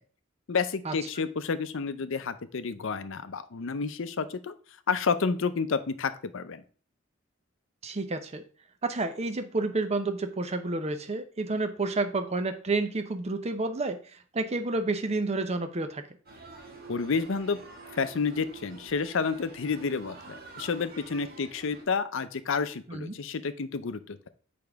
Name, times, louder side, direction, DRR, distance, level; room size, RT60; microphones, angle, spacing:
voice 1, 0.5-4.5 4.9-6.6 16.9-17.6 17.9-24.2, left 5 dB, 70° left, 12 dB, 0.6 m, -30 dB
voice 2, 7.8-8.4 8.8-16.0 22.9-23.2, right 3 dB, 30° right, 8 dB, 0.6 m, -30 dB
sound 1, 16.3-21.8, right 3 dB, 50° right, 1.4 m, -47 dB
6.8 x 5.1 x 3.5 m, 0.42 s
head